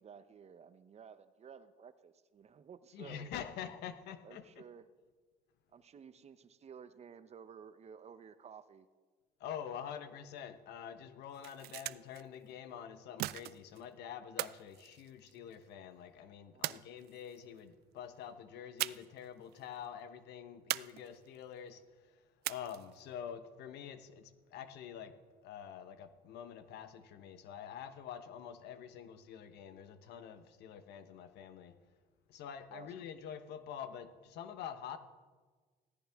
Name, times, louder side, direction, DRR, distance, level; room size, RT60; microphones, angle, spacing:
voice 1, 0.0-3.3 4.2-4.9 5.7-8.9 16.5-16.8 32.7-33.1, right 7 dB, 40° right, 12 dB, 0.8 m, -54 dB
voice 2, 2.9-4.4 9.4-25.2 25.4-31.8 32.3-35.0, left 8 dB, 80° left, 10 dB, 1.1 m, -47 dB
sound 1, 11.2-12.2 13.2-13.8 14.4-15.6 16.6-17.4 18.8-19.3 19.5-19.6 20.7-21.4 22.4-23.0, right 16 dB, 70° right, 0.4 m, -40 dB
16.0 x 14.0 x 3.6 m, 1.4 s
cardioid pair, 110°, 17 cm